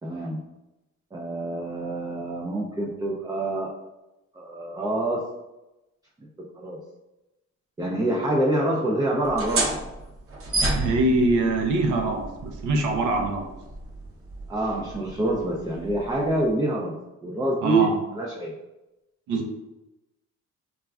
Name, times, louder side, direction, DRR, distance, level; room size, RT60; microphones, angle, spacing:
voice 1, 0.0-0.4 1.1-3.7 4.3-5.3 6.4-6.8 7.8-9.7 14.5-18.5, right 2 dB, 15° right, -3 dB, 0.4 m, -26 dB
sound 1, 9.2-16.5, right 2 dB, 45° right, 0.7 m, -32 dB
voice 2, 10.7-13.5 17.6-18.0 19.3-19.5, right 2 dB, 85° right, 3 dB, 0.6 m, -23 dB
3.1 x 2.4 x 2.2 m, 0.98 s
cardioid pair, 90°, 30 cm